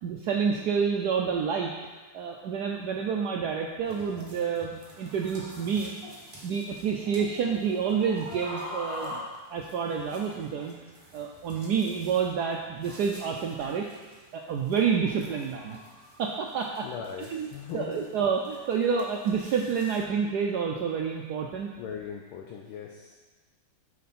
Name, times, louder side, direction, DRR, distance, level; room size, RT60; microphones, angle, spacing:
voice 1, 0.0-1.7 2.1-6.0 6.4-9.2 9.5-10.8 11.1-13.9 14.3-15.8 16.2-16.9 17.3-17.5 17.7-21.7, right 6 dB, 85° right, 1 dB, 0.8 m, -28 dB
sound 1, 3.9-20.0, equal, 20° right, 1.0 m, -45 dB
voice 2, 16.8-18.0 21.8-23.1, left 7 dB, 80° left, 1 dB, 1.5 m, -39 dB
9.3 x 4.7 x 4.2 m, 1.3 s
omnidirectional pair, 2.4 m